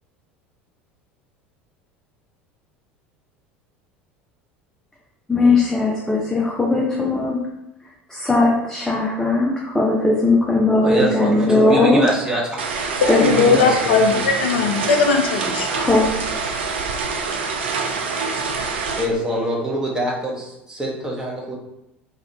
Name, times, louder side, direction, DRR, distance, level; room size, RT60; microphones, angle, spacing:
voice 1, 5.3-7.4 8.1-12.0 13.1-13.7 15.6-16.1, left 2 dB, 10° left, -3 dB, 0.5 m, -18 dB
voice 2, 10.8-12.9 13.2-14.3 19.0-21.5, equal, 10° right, -3 dB, 0.9 m, -24 dB
sound 1, 12.6-19.1, right 4 dB, 70° right, 0.4 m, -25 dB
voice 3, 13.0-15.7, left 5 dB, 70° left, 4 dB, 0.3 m, -18 dB
2.8 x 2.4 x 3.3 m, 0.86 s
figure-of-eight pair, 70°, 6 cm